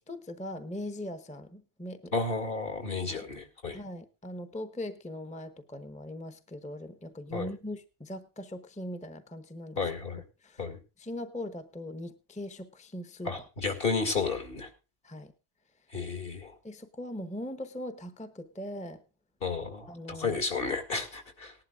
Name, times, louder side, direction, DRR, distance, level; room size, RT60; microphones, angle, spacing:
voice 1, 0.1-2.1 3.1-3.2 3.7-9.8 10.4-10.6 11.0-13.3 15.0-15.3 16.6-19.0 19.9-20.4, left 1 dB, 5° left, 11 dB, 0.9 m, -40 dB
voice 2, 2.1-3.8 7.3-7.5 9.8-10.2 10.6-10.8 13.2-14.7 15.9-16.5 19.4-21.5, left 4 dB, 60° left, 7 dB, 2.4 m, -32 dB
18.5 x 11.5 x 2.4 m, 0.30 s
omnidirectional pair, 1.0 m